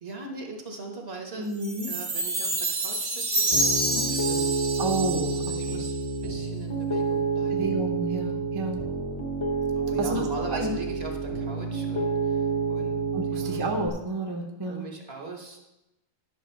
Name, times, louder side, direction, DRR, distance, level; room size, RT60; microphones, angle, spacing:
voice 1, 0.0-1.5 1.9-4.5 5.4-7.7 9.7-12.4 12.7-13.0 13.2-13.6 14.7-15.6, right 2 dB, 45° right, 2 dB, 1.3 m, -40 dB
voice 2, 1.4-1.9 3.9-4.1 4.8-5.4 5.7-5.8 7.5-8.8 10.0-10.7 13.1-14.8, right 2 dB, 20° right, 1 dB, 0.9 m, -31 dB
Chime, 1.6-6.1, right 2 dB, 80° right, 2.0 m, -28 dB
Piano, 3.5-13.9, right 4 dB, 20° left, 1.0 m, -29 dB
11.0 x 6.1 x 4.4 m, 0.96 s
omnidirectional pair, 1.5 m